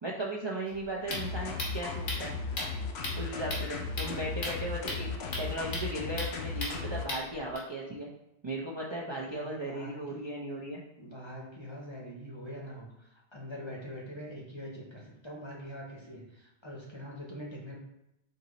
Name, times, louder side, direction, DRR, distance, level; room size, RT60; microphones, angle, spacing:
voice 1, 0.0-2.4 3.2-8.1 8.4-10.8, right 1 dB, 40° right, -3 dB, 0.4 m, -37 dB
sound 1, 0.7-7.6, left 1 dB, 85° left, 1.5 m, -39 dB
sound 2, 1.1-7.1, left 4 dB, 70° left, 0.9 m, -36 dB
voice 2, 9.2-10.3 11.0-17.8, equal, 30° left, -3 dB, 0.7 m, -44 dB
4.7 x 2.9 x 4.0 m, 0.86 s
omnidirectional pair, 1.2 m